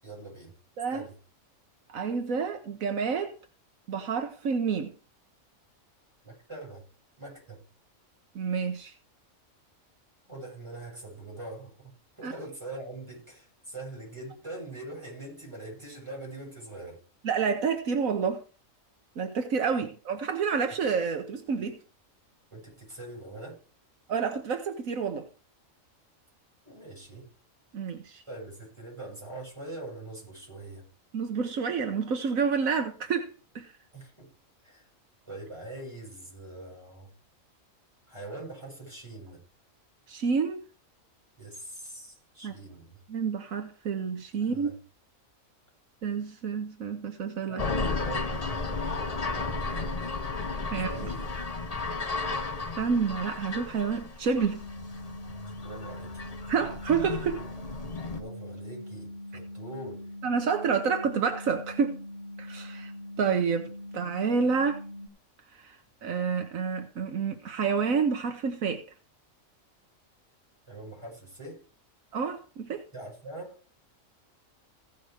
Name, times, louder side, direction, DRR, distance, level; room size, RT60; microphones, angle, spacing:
voice 1, 0.0-0.6 0.9-1.2 6.2-6.8 7.2-7.6 10.3-17.0 22.5-23.6 26.7-27.3 28.3-30.9 33.9-34.3 34.6-34.9 35.3-37.1 38.1-39.4 41.4-43.0 44.4-44.8 47.5-49.9 50.7-51.3 55.6-56.1 58.1-60.1 70.7-71.7 72.9-73.6, right 2 dB, 20° right, 7.4 m, -43 dB
voice 2, 1.9-3.3 3.9-4.9 8.3-8.9 12.2-12.3 17.2-18.4 19.2-21.8 24.1-25.3 27.7-28.2 31.1-33.7 40.1-40.6 42.4-42.5 43.1-44.7 46.0-47.6 50.7-51.1 52.8-54.6 56.5-57.5 60.2-62.1 62.4-62.9 63.2-64.8 65.6-68.8 72.1-72.8, right 5 dB, 80° right, 1.4 m, -29 dB
sound 1, 47.6-58.2, left 3 dB, 30° left, 1.1 m, -34 dB
sound 2, 54.6-65.1, left 1 dB, 50° left, 3.1 m, -42 dB
16.0 x 5.5 x 4.8 m
omnidirectional pair, 1.4 m